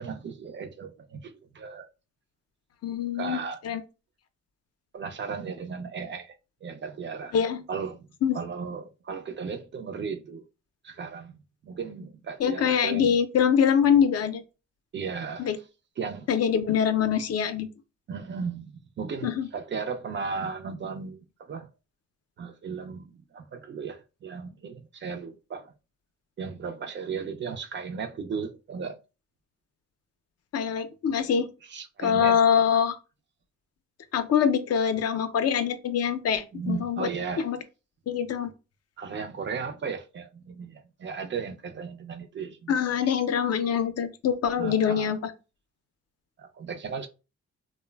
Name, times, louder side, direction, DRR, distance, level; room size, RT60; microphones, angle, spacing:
voice 1, 0.0-1.9 3.1-3.6 4.9-7.4 7.7-8.1 8.3-10.4 10.8-11.3 11.6-13.2 14.9-15.5 16.0-16.3 18.1-21.7 22.4-25.7 26.4-29.0 31.6-32.4 36.5-37.5 39.0-43.0 44.6-45.1 46.4-47.1, right 5 dB, 40° right, 0.4 m, -36 dB
voice 2, 2.8-3.4 3.6-3.8 7.3-7.6 8.2-8.4 12.4-14.4 15.4-15.6 16.3-17.7 19.2-19.5 30.5-31.5 32.0-33.0 34.1-37.1 37.4-37.6 38.1-38.5 42.7-45.3, left 7 dB, 60° left, 0.4 m, -24 dB
3.0 x 2.0 x 2.2 m
cardioid pair, 100°, 29 cm